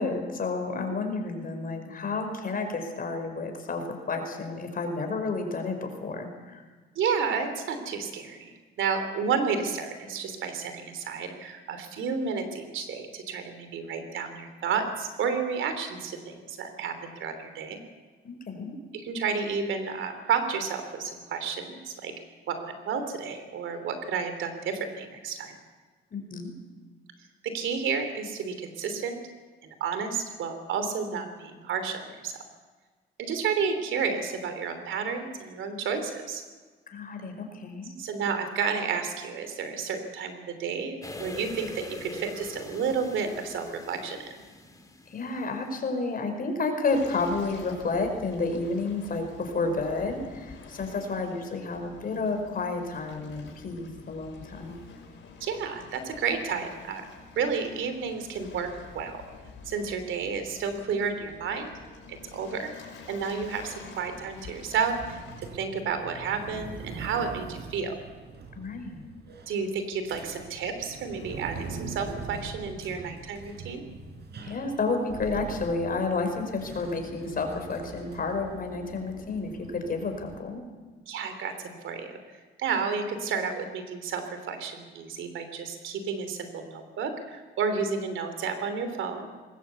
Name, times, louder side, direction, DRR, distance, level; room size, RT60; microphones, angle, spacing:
voice 1, 0.0-6.6 18.2-18.8 26.1-26.5 36.9-38.0 45.1-54.8 68.5-69.0 74.4-80.7, left 3 dB, 45° left, 5 dB, 4.9 m, -31 dB
voice 2, 6.9-8.5 8.8-17.8 19.0-22.1 22.5-25.5 27.5-29.2 29.6-32.3 33.2-36.4 38.0-44.3 55.4-57.0 57.4-58.7 58.9-59.2 59.6-61.7 62.1-62.7 63.1-67.9 69.5-73.8 81.1-82.2 82.6-89.3, right 5 dB, 80° right, 8 dB, 3.1 m, -31 dB
sound 1, 41.0-45.8 46.2-46.3, left 2 dB, 15° left, 2.8 m, -43 dB
Waves surf, 46.9-65.4, left 5 dB, 75° left, 5.8 m, -48 dB
sound 2, 63.8-80.4, right 4 dB, 55° right, 4.4 m, -43 dB
20.5 x 19.0 x 8.3 m, 1.4 s
cardioid pair, 90°, 20 cm